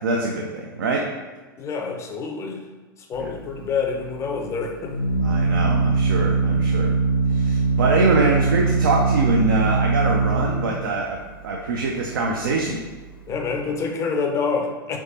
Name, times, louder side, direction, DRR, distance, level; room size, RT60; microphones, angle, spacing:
voice 1, 0.0-1.0 3.2-3.3 5.2-6.9 7.3-11.2 11.4-12.8, right 3 dB, 65° right, -1 dB, 0.5 m, -24 dB
voice 2, 1.6-2.6 3.1-5.0 13.3-15.0, left 5 dB, 25° left, 2 dB, 0.5 m, -27 dB
Organ, 3.1-13.6, right 3 dB, 90° left, 0.4 m, -23 dB
3.4 x 3.1 x 2.7 m, 1.2 s
figure-of-eight pair, 95°, 12 cm